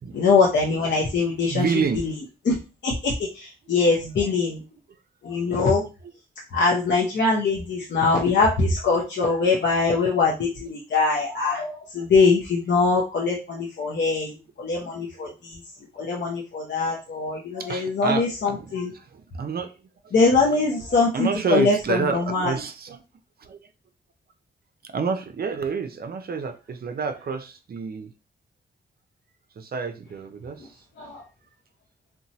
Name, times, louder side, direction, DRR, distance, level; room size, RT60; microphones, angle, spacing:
voice 1, 0.1-1.6 2.0-2.1 2.5-2.6 2.8-4.6 5.2-5.8 6.5-14.3 14.6-15.6 16.0-18.9 20.1-22.5 31.0-31.2, left 4 dB, 60° left, 0.6 m, -22 dB
voice 2, 1.5-2.0 5.8-6.1 12.0-12.1 15.1-15.3 16.0-16.2 17.6-19.7 20.0-20.2 21.1-23.0 23.4-23.6 24.8-28.1 29.6-30.8, right 5 dB, 50° right, 0.5 m, -29 dB
2.9 x 2.2 x 2.7 m
cardioid pair, 65°, 20 cm